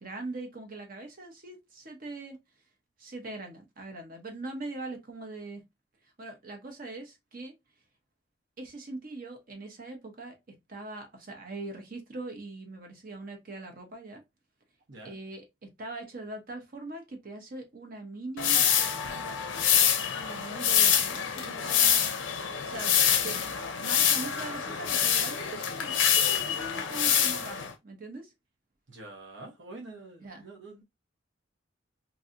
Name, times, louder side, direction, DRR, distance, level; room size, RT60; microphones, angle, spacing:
voice 1, 0.0-2.4 3.0-5.6 6.2-7.5 8.6-14.2 15.0-18.6 20.1-22.1 22.6-22.9 23.2-23.4 23.8-28.3 30.2-30.5, right 2 dB, 50° right, 0.9 m, -41 dB
sound 1, 18.4-27.7, left 8 dB, 90° left, 0.6 m, -26 dB
voice 2, 28.9-30.8, right 2 dB, 75° right, 1.1 m, -46 dB
3.1 x 2.7 x 2.5 m
head